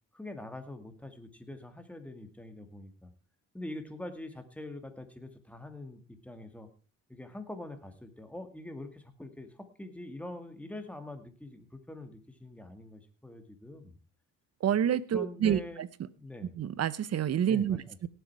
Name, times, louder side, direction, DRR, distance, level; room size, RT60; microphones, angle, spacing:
voice 1, 0.1-3.1 3.5-6.7 7.1-14.0 15.1-15.8 16.1-16.5 17.5-18.0, left 1 dB, 5° left, 7 dB, 2.3 m, -44 dB
voice 2, 14.6-15.9 16.6-18.1, right 9 dB, 55° right, 18 dB, 0.9 m, -28 dB
17.5 x 7.9 x 4.8 m, 0.35 s
cardioid pair, 90°, 30 cm